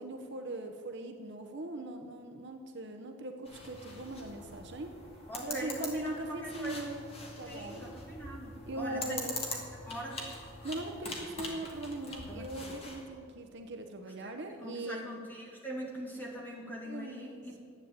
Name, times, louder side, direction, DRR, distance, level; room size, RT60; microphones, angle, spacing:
voice 1, 0.0-4.9 5.4-7.0 7.4-7.8 8.6-9.4 10.6-15.1 16.8-17.4, right 2 dB, 50° right, 5 dB, 0.9 m, -40 dB
sound 1, 3.4-13.0, left 2 dB, 25° left, 2.0 m, -43 dB
voice 2, 5.3-6.9 7.5-9.3 9.9-10.2 12.3-12.5 14.2-14.3 14.6-17.6, right 1 dB, 10° left, -2 dB, 2.3 m, -41 dB
11.5 x 8.3 x 8.7 m, 2.4 s
head